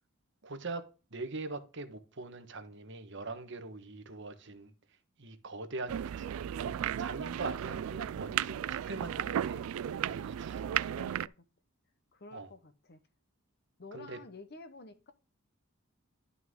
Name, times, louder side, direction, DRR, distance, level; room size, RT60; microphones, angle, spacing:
voice 1, 0.4-4.7 5.2-8.6 8.9-11.0 12.3-12.5 13.9-14.2, right 3 dB, 60° right, 1.3 m, -42 dB
sound 1, 5.9-11.3, right 10 dB, 80° right, 0.3 m, -35 dB
voice 2, 10.5-11.4 12.1-13.0 13.8-15.1, left 3 dB, 50° left, 1.0 m, -51 dB
11.5 x 6.0 x 3.7 m
head